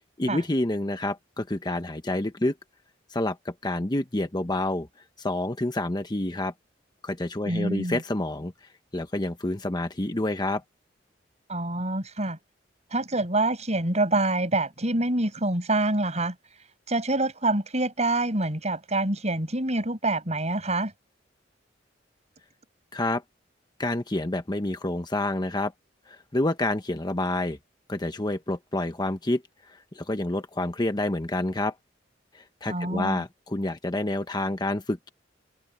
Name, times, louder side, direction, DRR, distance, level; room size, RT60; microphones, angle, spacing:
voice 1, 0.2-2.6 3.1-4.9 5.2-6.5 7.0-8.5 8.9-10.6 22.9-23.2 23.8-25.7 26.1-27.6 27.9-31.7 32.3-35.1, left 1 dB, 25° left, 1.0 m, -28 dB
voice 2, 7.5-8.0 11.5-12.4 12.9-16.4 16.9-20.9 32.7-33.2, right 2 dB, 40° right, 7.2 m, -26 dB
head